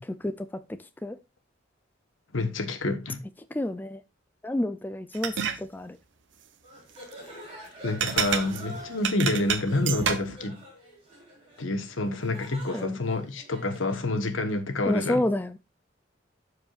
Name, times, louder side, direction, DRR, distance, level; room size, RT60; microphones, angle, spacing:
voice 1, 0.2-1.2 3.5-4.0 4.4-6.0 12.7-13.0 14.9-15.6, left 1 dB, 10° left, 0.3 m, -30 dB
voice 2, 2.3-3.2 7.8-10.6 11.6-15.2, left 2 dB, 90° left, 1.2 m, -28 dB
Breakfast soundscape, 5.1-5.6 8.0-10.4, right 7 dB, 65° right, 0.8 m, -28 dB
sound 1, 6.6-14.1, right 1 dB, 25° right, 4.8 m, -46 dB
13.0 x 4.8 x 2.4 m
head